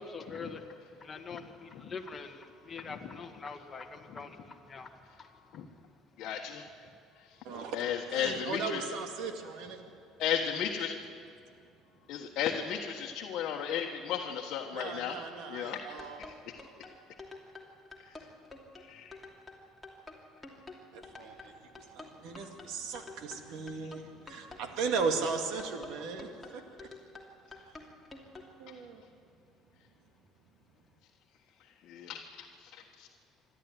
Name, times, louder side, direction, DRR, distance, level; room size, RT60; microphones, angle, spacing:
voice 1, 0.0-5.3, left 4 dB, 25° left, 3 dB, 1.8 m, -44 dB
voice 2, 6.2-6.7 7.3-7.4 7.7-8.8 10.2-11.0 12.1-15.1 15.5-16.1 18.0-18.3 18.8-19.2 31.8-33.1, left 8 dB, 55° left, 0 dB, 1.5 m, -35 dB
voice 3, 7.4-7.8 8.1-9.8 14.7-16.2 20.9-26.9 28.6-29.0, right 4 dB, 70° right, 4 dB, 2.3 m, -37 dB
sound 1, 15.7-28.5, left 3 dB, 10° left, 2.8 m, -49 dB
25.5 x 12.5 x 9.4 m, 2.4 s
cardioid pair, 135°, 0 cm